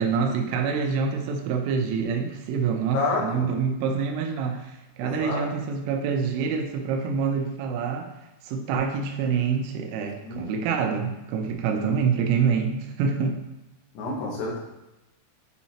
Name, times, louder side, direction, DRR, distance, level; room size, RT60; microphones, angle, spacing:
voice 1, 0.0-8.1 8.4-13.4, right 6 dB, 80° right, 4 dB, 3.1 m, -26 dB
voice 2, 2.9-3.5 5.0-5.4 10.2-10.4 14.0-14.6, left 3 dB, 85° left, -2 dB, 4.1 m, -28 dB
9.4 x 4.2 x 2.8 m, 0.96 s
omnidirectional pair, 5.9 m